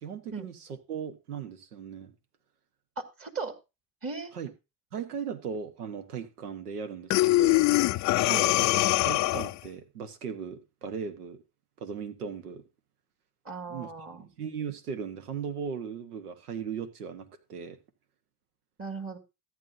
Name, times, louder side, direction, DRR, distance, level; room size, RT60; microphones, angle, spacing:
voice 1, 0.0-2.1 4.3-4.5 4.9-7.7 9.0-11.4 11.8-12.6 13.7-13.9 14.2-17.8, right 6 dB, 90° right, 1.2 m, -37 dB
voice 2, 3.0-3.5 4.0-4.3 8.2-8.5 13.4-14.3 18.8-19.2, right 4 dB, 30° right, 2.2 m, -37 dB
Breathing, 7.1-9.7, left 18 dB, 40° left, 0.5 m, -23 dB
14.0 x 9.6 x 2.7 m
hypercardioid pair, 75°, 44 cm